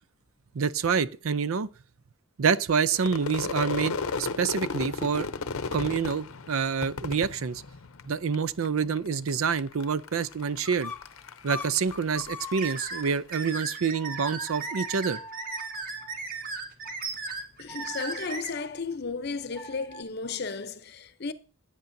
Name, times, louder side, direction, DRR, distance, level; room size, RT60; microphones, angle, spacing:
voice 1, 0.5-1.7 2.4-5.3 5.7-7.6 8.1-10.9 11.4-15.2, right 6 dB, 80° right, 0.5 m, -27 dB
Crowd / Fireworks, 3.0-8.3 8.6-9.3 9.6-13.1, left 4 dB, 90° left, 0.7 m, -34 dB
sound 1, 8.4-13.4 13.9-20.0, left 3 dB, 10° left, 1.1 m, -45 dB
sound 2, 12.6-18.5, right 4 dB, 45° right, 1.6 m, -36 dB
voice 2, 17.6-21.3, left 4 dB, 50° left, 0.7 m, -34 dB
16.0 x 8.9 x 2.7 m
head